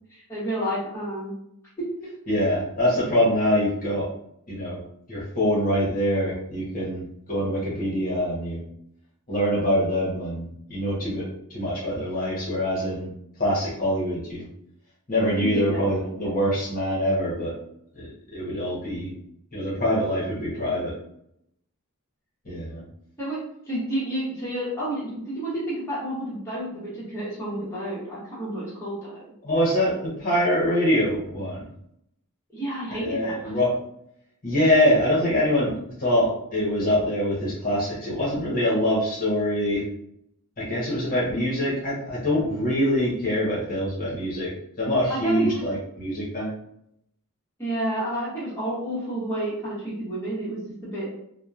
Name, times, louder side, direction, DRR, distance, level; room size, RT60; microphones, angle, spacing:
voice 1, 0.1-1.3 15.4-15.8 20.6-20.8 23.2-23.4 23.7-29.2 32.5-33.4 45.1-45.6 47.6-51.1, right 1 dB, 10° left, -9 dB, 1.0 m, -30 dB
voice 2, 2.3-4.1 4.5-4.8 5.1-7.0 7.3-8.6 9.3-11.2 11.5-13.1 13.4-14.4 15.1-17.5 17.9-19.1 19.5-20.9 22.4-22.8 29.4-31.7 33.0-33.7 34.4-35.7 36.0-39.8 40.6-44.5 44.8-46.5, equal, 40° left, -7 dB, 1.0 m, -24 dB
2.9 x 2.2 x 2.4 m, 0.74 s
head